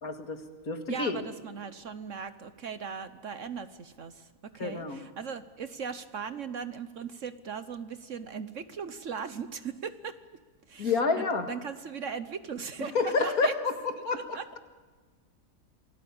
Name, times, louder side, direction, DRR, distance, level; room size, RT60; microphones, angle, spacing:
voice 1, 0.0-1.2 4.6-5.0 10.8-11.5 12.9-14.6, left 4 dB, 65° left, 6 dB, 2.4 m, -29 dB
voice 2, 0.9-10.2 10.7-13.6 14.0-14.6, right 6 dB, 55° right, 12 dB, 1.2 m, -38 dB
28.0 x 18.5 x 8.6 m, 1.4 s
omnidirectional pair, 1.7 m